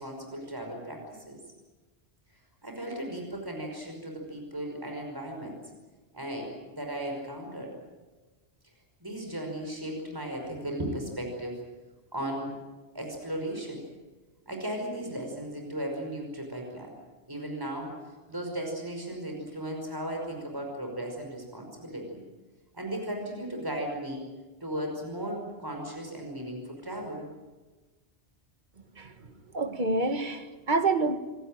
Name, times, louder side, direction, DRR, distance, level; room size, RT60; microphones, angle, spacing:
voice 1, 0.0-1.4 2.6-5.6 6.1-7.8 9.0-11.6 12.1-12.6 12.9-13.8 14.5-16.9 17.3-22.2 22.7-24.2 24.6-27.3, right 1 dB, 20° right, 2 dB, 5.5 m, -36 dB
voice 2, 29.0-29.3 29.5-31.2, right 3 dB, 45° right, 7 dB, 1.8 m, -27 dB
27.5 x 18.0 x 9.1 m, 1.2 s
omnidirectional pair, 1.2 m